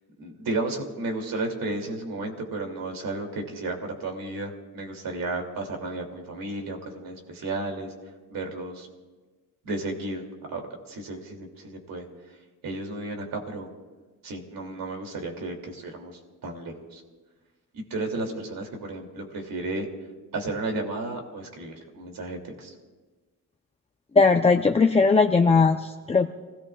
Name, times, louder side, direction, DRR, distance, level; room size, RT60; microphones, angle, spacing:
voice 1, 0.2-7.9 8.3-8.9 9.6-10.3 10.5-10.6 10.9-12.0 12.6-13.7 14.2-17.0 17.7-19.9 20.3-22.7, right 2 dB, 75° right, 3 dB, 2.8 m, -33 dB
voice 2, 24.2-26.3, left 4 dB, 20° left, 3 dB, 0.7 m, -19 dB
29.5 x 17.5 x 2.4 m, 1.3 s
cardioid pair, 115°, 35 cm